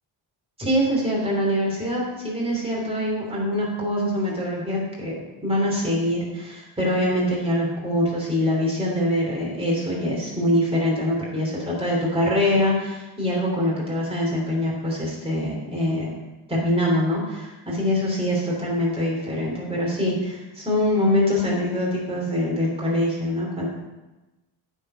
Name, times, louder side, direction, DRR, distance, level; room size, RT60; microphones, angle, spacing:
voice 1, 0.6-16.1 16.5-23.6, left 1 dB, 10° right, -5 dB, 3.2 m, -24 dB
9.1 x 4.7 x 5.1 m, 1.1 s
cardioid pair, 105°, 46 cm